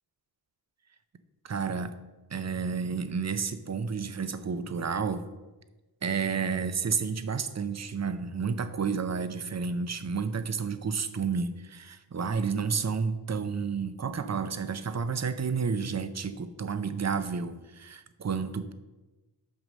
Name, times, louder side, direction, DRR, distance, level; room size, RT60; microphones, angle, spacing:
voice 1, 1.4-1.9 2.3-5.2 6.0-18.7, right 5 dB, 40° right, 11 dB, 0.6 m, -31 dB
6.1 x 5.4 x 6.3 m, 1.1 s
wide cardioid pair, 100°, 40 cm